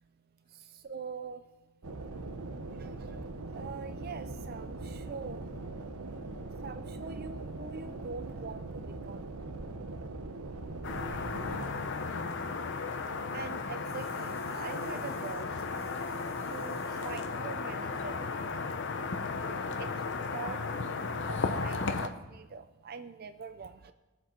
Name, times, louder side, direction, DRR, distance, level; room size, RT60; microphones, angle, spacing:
voice 1, 0.5-1.4 2.8-3.2 3.5-5.5 6.6-9.3 13.3-15.5 15.8-16.1 16.4-18.6 20.3-23.9, right 5 dB, 45° right, 11 dB, 0.4 m, -44 dB
sound 1, 1.8-11.7, right 2 dB, 80° right, 0.9 m, -41 dB
voice 2, 2.1-2.5 6.1-6.6 14.9-15.4 16.8-17.1 19.5-20.5, equal, 20° left, -2 dB, 2.3 m, -57 dB
sound 2, 10.8-22.1, left 4 dB, 55° left, 0.8 m, -35 dB
21.0 x 7.7 x 4.5 m, 1.2 s
head